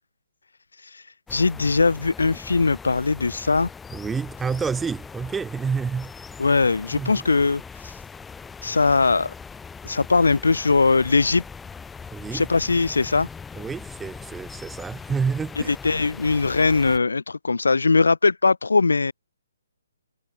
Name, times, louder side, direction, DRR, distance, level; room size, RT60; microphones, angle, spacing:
voice 1, 1.3-3.7 6.4-7.9 8.6-9.3 9.8-11.4 12.3-13.3 15.7-19.1, left 4 dB, 75° left, 0.3 m, -20 dB
sound 1, 1.3-17.0, left 5 dB, 10° left, 1.7 m, -41 dB
voice 2, 3.9-6.1 6.9-7.2 12.1-12.5 13.5-15.7, right 5 dB, 10° right, 1.6 m, -29 dB
figure-of-eight pair, 140°, 0 cm